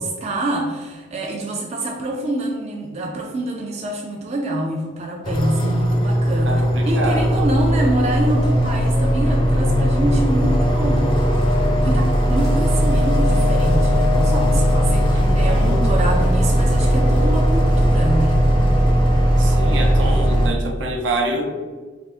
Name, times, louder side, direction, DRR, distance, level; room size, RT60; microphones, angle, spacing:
voice 1, 0.0-11.1 11.8-18.5, right 1 dB, 35° right, 0 dB, 0.4 m, -26 dB
sound 1, 5.2-20.5, equal, 25° left, 0.5 m, -17 dB
voice 2, 6.5-7.5 15.1-15.8 19.4-21.4, right 1 dB, 75° right, 2 dB, 0.7 m, -26 dB
3.6 x 2.5 x 3.4 m, 1.4 s
head